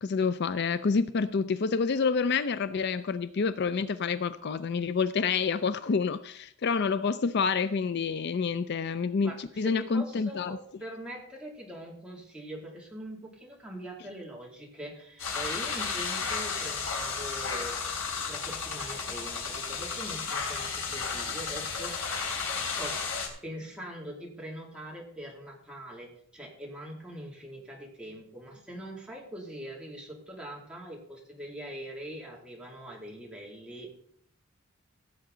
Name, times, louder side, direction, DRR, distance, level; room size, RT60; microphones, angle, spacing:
voice 1, 0.0-10.6, left 5 dB, 55° left, 0.4 m, -28 dB
voice 2, 9.2-17.8 18.0-22.0 22.8-23.0 23.4-33.9, equal, 5° right, 2.5 m, -42 dB
sound 1, 15.2-23.3, left 5 dB, 70° left, 3.1 m, -33 dB
16.0 x 7.7 x 3.8 m
head